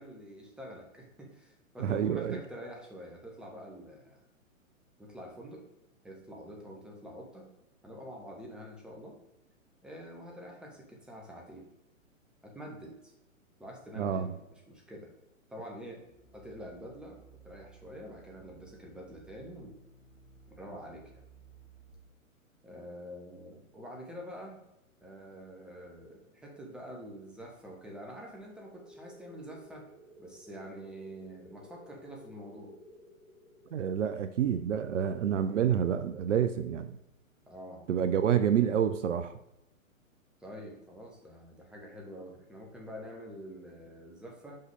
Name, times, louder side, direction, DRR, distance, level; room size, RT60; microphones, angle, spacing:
voice 1, 0.0-4.2 5.0-5.6 6.0-7.5 7.8-9.2 9.8-11.6 12.4-13.1 13.6-14.4 14.7-15.1 15.5-16.0 16.3-19.7 20.5-21.2 22.6-24.6 25.0-29.8 30.2-32.7 37.5-37.9 40.4-44.6, equal, ahead, -1 dB, 0.8 m, -46 dB
voice 2, 1.8-2.4 14.0-14.3 33.7-37.0 37.9-39.3, right 9 dB, 60° right, 10 dB, 0.5 m, -28 dB
sound 1, 16.0-21.9, right 5 dB, 45° left, 1.2 m, -58 dB
sound 2, 28.7-37.1, left 1 dB, 80° right, 1.7 m, -56 dB
5.5 x 5.3 x 3.4 m, 0.89 s
figure-of-eight pair, 120°, 42 cm